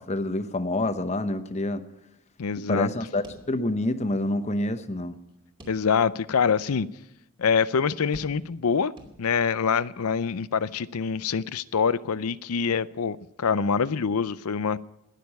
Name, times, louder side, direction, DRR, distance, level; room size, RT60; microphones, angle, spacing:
voice 1, 0.0-1.8 2.7-5.2, left 2 dB, 30° left, 10 dB, 0.9 m, -27 dB
voice 2, 2.4-2.9 5.7-6.9 7.4-8.9 9.2-14.8, left 6 dB, 85° left, 17 dB, 0.6 m, -25 dB
sound 1, 3.2-4.1 4.4-4.5 5.6-6.2 6.8-6.9 8.1-8.7 9.0-9.6, equal, 25° right, 2.7 m, -47 dB
19.5 x 6.8 x 9.6 m, 0.89 s
head